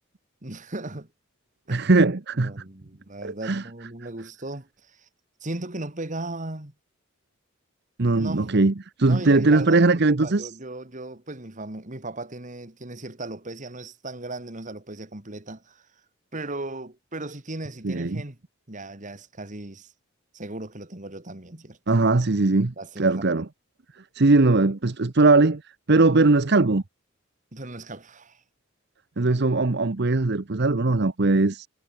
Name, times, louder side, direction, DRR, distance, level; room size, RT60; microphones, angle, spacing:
voice 1, 0.4-1.1 1.7-1.9 2.4-5.1 5.4-6.7 8.1-8.5 9.0-15.9 16.3-18.4 18.7-19.9 20.3-21.8 22.8-23.2 27.5-28.4, right 2 dB, 35° right, 2.0 m, -37 dB
voice 2, 1.7-2.5 3.2-3.6 8.0-8.7 9.0-10.5 17.8-18.2 21.9-23.5 24.1-25.6 25.9-26.8 29.2-31.7, right 3 dB, 50° right, 0.9 m, -20 dB
head